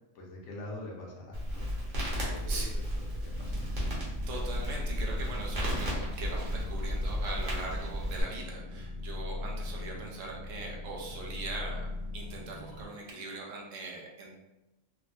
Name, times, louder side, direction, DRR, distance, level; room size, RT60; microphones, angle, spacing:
voice 1, 0.1-1.7 2.2-2.8 3.1-3.6, left 2 dB, 70° left, -2 dB, 1.0 m, -44 dB
Crackle, 1.3-8.2, equal, 45° right, 0.9 m, -34 dB
voice 2, 2.0-2.7 4.3-11.8 12.1-14.3, right 3 dB, 80° right, -1 dB, 1.0 m, -41 dB
sound 1, 3.3-12.9, left 2 dB, 85° left, 1.3 m, -39 dB
3.5 x 2.0 x 2.4 m, 0.99 s
omnidirectional pair, 1.3 m